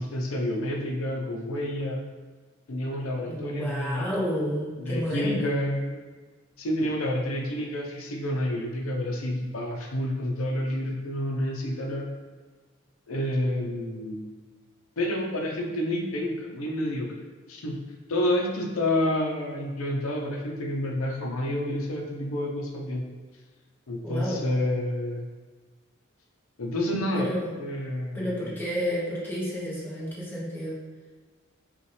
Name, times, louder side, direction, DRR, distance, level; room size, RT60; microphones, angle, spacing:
voice 1, 0.0-2.1 2.7-4.1 4.8-6.0 6.6-12.1 13.1-14.3 15.0-17.1 17.5-17.8 18.1-23.0 23.9-25.3 26.6-27.3 27.6-28.5, left 1 dB, 80° left, 1 dB, 0.7 m, -29 dB
voice 2, 3.2-5.6 24.0-24.4 27.1-27.6 28.1-30.8, equal, 10° left, -7 dB, 1.0 m, -31 dB
5.4 x 2.4 x 3.2 m, 1.4 s
head